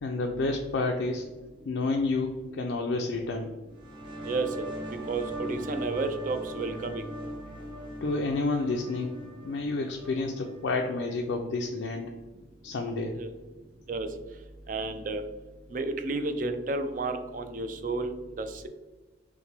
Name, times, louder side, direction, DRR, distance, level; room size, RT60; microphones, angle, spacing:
voice 1, 0.0-1.3 1.7-3.5 8.0-9.1 9.4-12.1 12.6-13.1, left 3 dB, 85° left, 2 dB, 0.4 m, -30 dB
sound 1, 3.7-11.1, equal, 25° right, 0.8 m, -40 dB
voice 2, 5.1-7.0 13.1-13.3 13.9-14.1 14.7-15.2 15.7-18.7, right 3 dB, 45° right, 8 dB, 0.3 m, -31 dB
5.7 x 2.2 x 3.3 m, 1.2 s
head